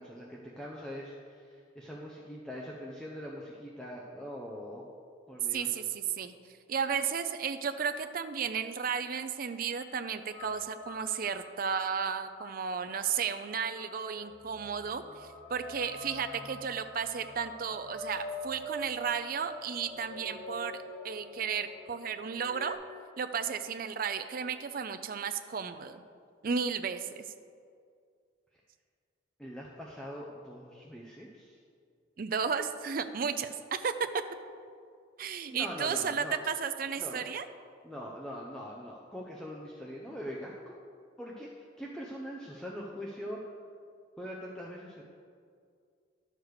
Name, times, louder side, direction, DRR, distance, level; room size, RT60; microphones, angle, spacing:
voice 1, 0.0-4.8 5.3-5.8 29.4-31.6 35.5-36.5 37.0-37.3 37.8-40.8 41.2-43.4 44.2-45.0, equal, 5° left, -4 dB, 0.6 m, -42 dB
voice 2, 5.5-6.3 6.7-20.8 21.0-22.8 23.2-26.0 26.4-27.2 32.2-34.2 35.2-37.5, right 6 dB, 45° right, 9 dB, 0.5 m, -33 dB
sound 1, 10.3-22.7, left 1 dB, 35° left, 1.6 m, -45 dB
11.0 x 6.6 x 4.7 m, 2.2 s
head